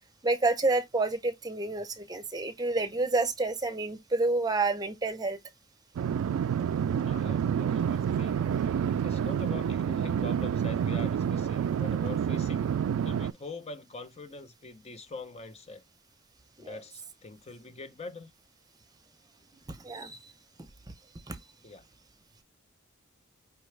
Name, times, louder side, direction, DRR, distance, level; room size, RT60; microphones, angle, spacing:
voice 1, 0.2-5.4 16.6-16.8 19.7-20.3 21.3-21.4, right 3 dB, 20° right, 0.7 m, -29 dB
sound 1, 6.0-13.3, right 8 dB, 85° right, 0.3 m, -28 dB
voice 2, 7.0-15.8 16.6-18.3 21.6-21.8, left 3 dB, 30° left, 0.6 m, -44 dB
5.6 x 2.3 x 3.2 m
head